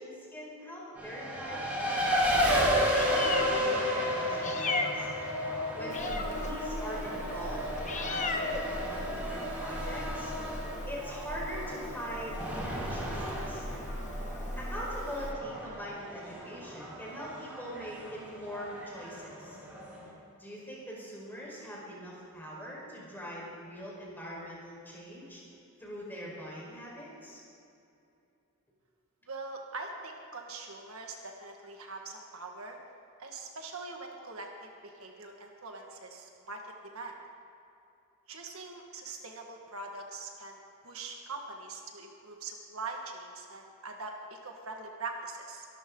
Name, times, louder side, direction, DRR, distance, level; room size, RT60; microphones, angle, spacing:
voice 1, 0.0-2.4 3.1-5.1 5.8-10.3 10.9-13.7 14.5-19.6 20.4-25.4 25.8-27.4, equal, 10° left, -4 dB, 4.6 m, -42 dB
Race car auto racing, 1.0-20.1, equal, 10° right, 3.6 m, -33 dB
Meow, 2.8-15.3, left 2 dB, 35° left, 1.1 m, -38 dB
voice 2, 29.3-32.8 33.2-37.1 38.3-40.6 40.8-45.7, right 3 dB, 70° right, 2 dB, 1.7 m, -42 dB
23.5 x 13.0 x 3.9 m, 2.7 s
head